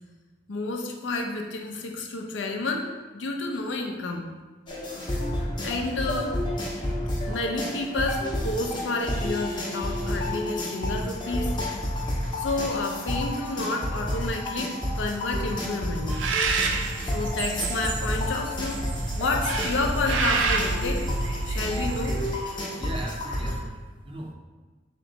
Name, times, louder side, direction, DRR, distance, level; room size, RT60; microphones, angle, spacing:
voice 1, 0.5-4.3 5.6-6.4 7.2-11.5 12.4-16.2 17.0-18.8 19.2-21.1 21.4-22.2, left 3 dB, 85° left, 2 dB, 0.5 m, -30 dB
sound 1, 4.7-23.6, left 1 dB, 25° left, 0.7 m, -30 dB
Bird, 16.1-22.5, right 4 dB, 85° right, 0.4 m, -29 dB
voice 2, 22.8-24.3, right 1 dB, 30° right, 2 dB, 0.4 m, -38 dB
3.4 x 2.9 x 3.9 m, 1.3 s
head